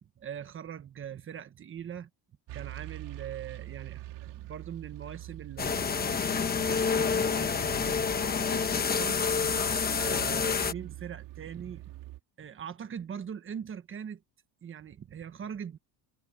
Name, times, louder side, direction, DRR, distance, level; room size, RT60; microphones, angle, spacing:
voice 1, 0.0-2.1 2.5-6.3 6.7-9.2 9.9-11.8 12.4-14.2 14.6-15.8, right 8 dB, 30° right, 1.3 m, -42 dB
sound 1, 2.5-12.2, right 16 dB, 90° right, 3.7 m, -44 dB
sound 2, 5.6-10.7, left 6 dB, 20° left, 1.0 m, -28 dB
cardioid pair, 170°, 41 cm